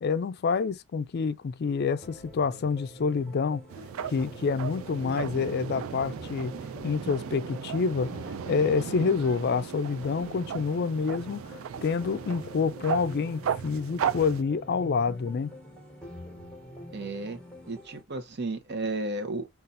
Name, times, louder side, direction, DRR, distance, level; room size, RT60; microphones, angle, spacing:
voice 1, 0.0-3.6 4.1-6.5 6.8-15.5, left 5 dB, 50° left, 0.4 m, -28 dB
sound 1, 2.0-18.0, equal, 5° left, 1.2 m, -46 dB
sound 2, 3.7-14.4, right 8 dB, 80° right, 0.3 m, -36 dB
voice 2, 16.9-17.4 17.7-19.5, right 2 dB, 55° right, 0.8 m, -33 dB
5.5 x 2.4 x 2.5 m
head